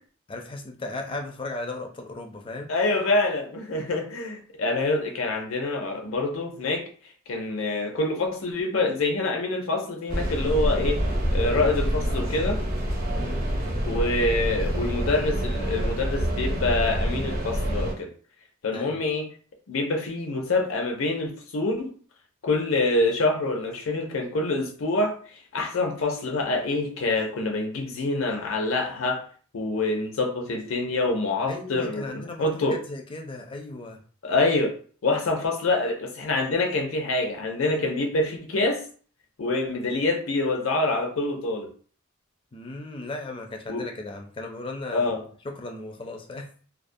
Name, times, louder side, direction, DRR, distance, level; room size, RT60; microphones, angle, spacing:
voice 1, 0.3-2.7 13.2-13.5 18.7-19.0 31.5-34.0 42.5-45.1 45.4-46.5, left 2 dB, 25° left, 3 dB, 0.4 m, -36 dB
voice 2, 2.7-6.9 7.3-11.0 11.3-12.6 13.9-18.1 18.6-19.3 19.7-21.9 22.4-25.1 25.5-29.2 29.5-32.8 34.2-34.8 35.0-38.8 39.4-41.7 43.7-43.8 44.9-45.2, left 2 dB, 70° left, 3 dB, 0.6 m, -26 dB
sound 1, 10.1-17.9, equal, 45° right, 0.7 m, -27 dB
2.4 x 2.0 x 2.5 m, 0.43 s
head